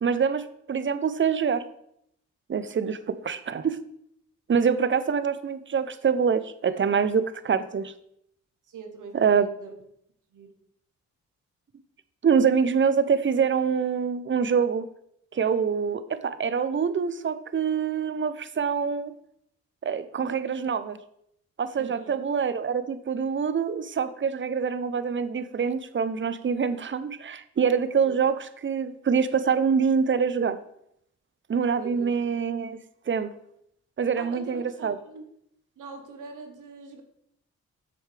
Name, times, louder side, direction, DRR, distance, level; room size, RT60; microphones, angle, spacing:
voice 1, 0.0-1.6 2.5-3.8 4.5-7.9 9.1-9.5 12.2-14.8 15.3-19.1 19.8-21.0 21.6-30.6 31.5-32.8 33.1-33.3 34.0-35.0, right 6 dB, 40° right, 13 dB, 0.7 m, -25 dB
voice 2, 8.7-9.7 10.3-10.5 21.8-22.2 26.7-26.8 28.0-28.2 31.8-32.1 34.2-35.3 35.8-37.0, right 4 dB, 70° right, 5 dB, 1.1 m, -43 dB
7.8 x 6.4 x 3.4 m, 0.74 s
supercardioid pair, 50°, 32 cm